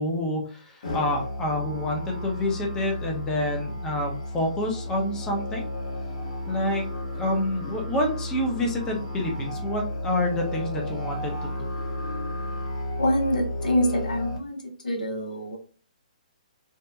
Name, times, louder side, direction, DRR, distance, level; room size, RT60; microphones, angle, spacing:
voice 1, 0.0-5.7 6.5-6.9 7.2-11.7, left 1 dB, 15° left, 1 dB, 0.6 m, -28 dB
Musical instrument, 0.8-14.4, left 1 dB, 60° left, 1.0 m, -33 dB
voice 2, 13.0-15.6, equal, 80° left, 2 dB, 0.7 m, -26 dB
2.8 x 2.2 x 2.2 m, 0.41 s
hypercardioid pair, 135°, 4 cm